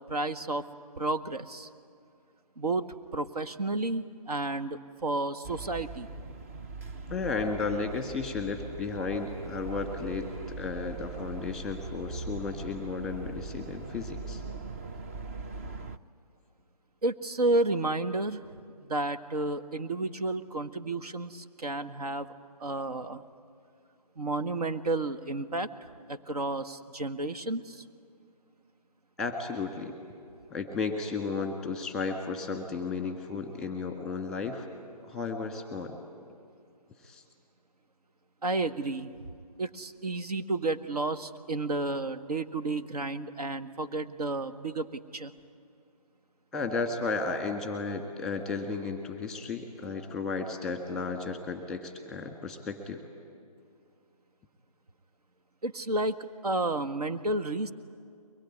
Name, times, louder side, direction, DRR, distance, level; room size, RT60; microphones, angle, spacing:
voice 1, 0.1-0.6 1.0-1.7 2.6-2.8 3.1-6.1 17.0-18.4 18.9-22.3 22.6-23.2 24.2-25.7 26.1-27.8 38.4-39.1 39.6-44.9 45.1-45.3 55.6-56.2 56.4-57.7, right 2 dB, 70° right, 9 dB, 1.4 m, -31 dB
sound 1, 5.4-16.0, right 3 dB, 20° right, 0.5 m, -41 dB
voice 2, 7.1-10.3 10.6-14.4 29.2-29.9 30.5-34.7 35.0-36.0 37.0-37.2 46.5-53.0, left 4 dB, 5° left, 5 dB, 1.6 m, -33 dB
23.0 x 21.0 x 9.8 m, 2.4 s
hypercardioid pair, 155°, 20 cm